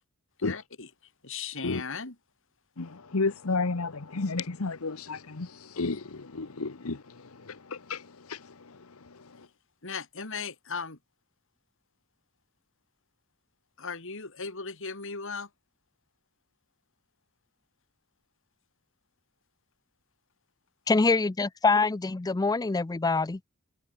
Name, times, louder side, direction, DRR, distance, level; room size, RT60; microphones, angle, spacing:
voice 1, 0.4-0.9 1.2-2.2 9.8-11.0 13.8-15.5, left 5 dB, 65° left, 3.8 m, -37 dB
voice 2, 2.8-9.5, left 3 dB, 85° left, 1.1 m, -33 dB
voice 3, 20.9-23.4, left 3 dB, 20° left, 0.4 m, -25 dB
head